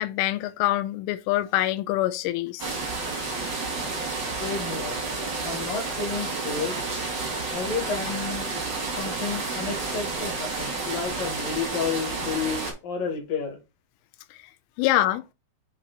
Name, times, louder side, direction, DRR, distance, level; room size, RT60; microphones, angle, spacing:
voice 1, 0.0-2.7 14.8-15.2, left 15 dB, 85° left, 3.0 m, -25 dB
sound 1, 2.6-12.7, right 3 dB, 65° right, 1.1 m, -30 dB
voice 2, 4.4-5.0 5.4-6.8 7.5-8.6 8.9-13.6, left 5 dB, 65° left, 2.4 m, -31 dB
8.1 x 3.0 x 3.9 m
omnidirectional pair, 5.6 m